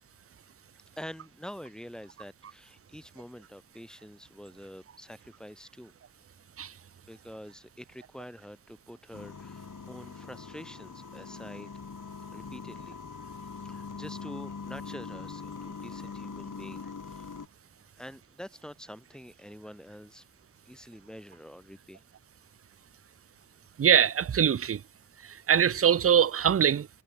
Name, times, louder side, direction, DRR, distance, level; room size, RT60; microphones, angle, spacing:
voice 1, 1.0-5.9 7.0-11.7 12.3-13.0 13.6-17.3 17.9-20.2 20.7-22.0, equal, ahead, 5.2 m, -46 dB
sound 1, 9.1-17.5, left 5 dB, 65° left, 4.3 m, -42 dB
voice 2, 23.8-24.8 25.2-26.9, right 8 dB, 45° right, 0.5 m, -23 dB
cardioid pair, 55°, 34 cm